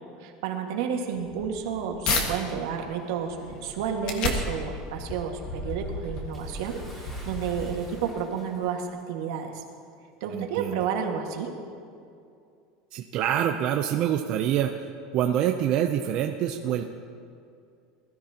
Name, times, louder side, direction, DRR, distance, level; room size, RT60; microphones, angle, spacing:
voice 1, 0.2-9.6 10.2-11.5, right 7 dB, 70° right, 2 dB, 1.7 m, -31 dB
sound 1, 1.1-2.3 2.8-8.1, left 3 dB, 40° left, 1.5 m, -33 dB
Bathtub (filling or washing) / Splash splatter, 6.3-8.9 9.9-10.0 10.9-11.0, equal, 15° left, 2.9 m, -50 dB
voice 2, 10.3-10.8 12.9-14.9 15.1-16.8, right 10 dB, 40° right, 4 dB, 0.5 m, -26 dB
21.0 x 13.0 x 2.9 m, 2.4 s
supercardioid pair, 170°, 2 cm